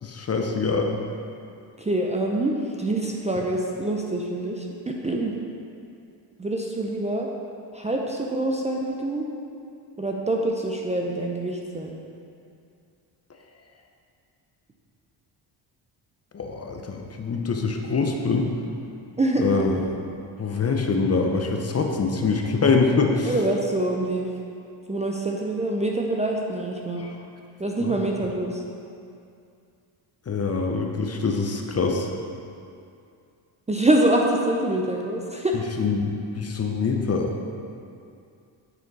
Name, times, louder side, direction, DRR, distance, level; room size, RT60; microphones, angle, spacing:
voice 1, 0.0-0.9 16.3-18.5 19.4-20.0 20.4-23.3 27.0-27.1 27.8-27.9 30.3-32.1 35.8-37.3, left 4 dB, 30° left, 2 dB, 0.7 m, -24 dB
voice 2, 1.8-5.3 6.4-7.3 7.7-9.2 10.0-12.0 19.2-19.5 23.3-24.3 24.9-27.1 27.6-28.6 33.7-35.6, right 1 dB, 15° right, -1 dB, 0.6 m, -25 dB
9.0 x 4.3 x 4.1 m, 2.5 s
cardioid pair, 80°, 48 cm